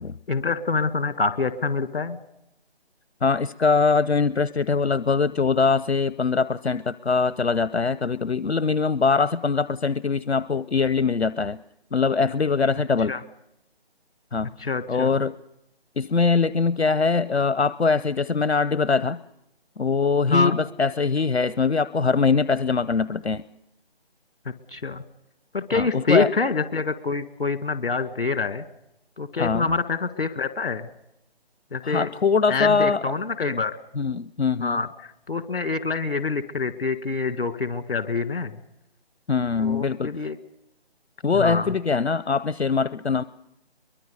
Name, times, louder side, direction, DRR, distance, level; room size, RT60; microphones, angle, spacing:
voice 1, 0.3-2.2 13.1-13.2 14.6-15.1 20.3-20.6 24.7-25.0 25.5-28.7 29.2-30.9 31.7-32.1 32.5-33.8 34.6-38.6 39.6-40.4 41.3-41.7, left 4 dB, 55° left, 13 dB, 1.9 m, -26 dB
voice 2, 3.2-11.6 11.9-13.1 14.3-14.5 14.9-15.3 16.0-19.2 19.8-23.4 25.7-26.3 29.4-29.7 31.8-33.0 34.0-34.8 39.3-40.1 41.2-43.2, left 4 dB, 80° left, 18 dB, 0.7 m, -22 dB
23.0 x 22.0 x 6.8 m, 0.86 s
figure-of-eight pair, 150°, 32 cm